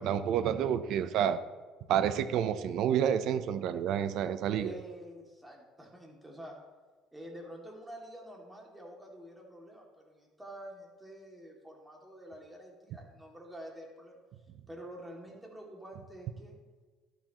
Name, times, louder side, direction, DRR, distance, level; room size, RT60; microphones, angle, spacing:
voice 1, 0.0-1.4 1.9-4.7, right 9 dB, 65° right, 12 dB, 0.7 m, -29 dB
voice 2, 4.6-6.5 7.1-14.2 14.7-16.6, equal, 10° right, -1 dB, 2.5 m, -48 dB
12.5 x 11.5 x 3.1 m, 1.3 s
cardioid pair, 120°, 0 cm